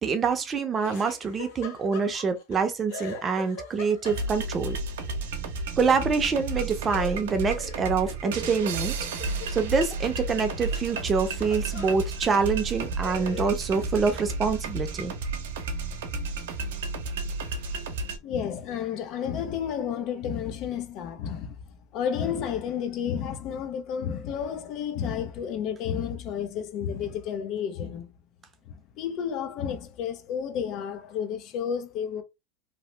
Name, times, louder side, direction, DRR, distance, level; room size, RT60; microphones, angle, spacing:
voice 1, 0.0-4.8 5.8-8.9 9.5-15.1, right 5 dB, 25° right, 0.6 m, -26 dB
Laughter, 0.8-2.6 2.9-4.5 6.9-10.0 10.4-12.0 12.6-12.7 13.0-14.4, left 3 dB, 70° left, 1.0 m, -41 dB
sound 1, 4.0-18.2, right 3 dB, 90° right, 0.7 m, -32 dB
voice 2, 18.2-21.6 21.9-28.1 28.7-32.2, left 8 dB, 50° left, 0.5 m, -31 dB
2.8 x 2.0 x 3.2 m
supercardioid pair, 120°, 0 cm